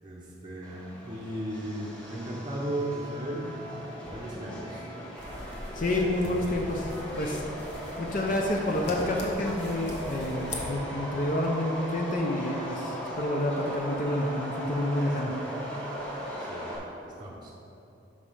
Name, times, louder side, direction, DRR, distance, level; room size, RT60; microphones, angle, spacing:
voice 1, 0.0-3.5 4.0-4.9 16.4-16.7 17.0-17.5, right 1 dB, 25° right, -5 dB, 0.7 m, -36 dB
Subway metro underground, 0.6-16.8, equal, 5° left, 1.2 m, -38 dB
sound 1, 5.2-10.6, left 1 dB, 55° left, 1.1 m, -41 dB
voice 2, 5.7-6.9 7.2-7.4 8.0-15.3, left 1 dB, 40° left, 1 dB, 0.5 m, -29 dB
6.2 x 5.1 x 5.5 m, 3.0 s
head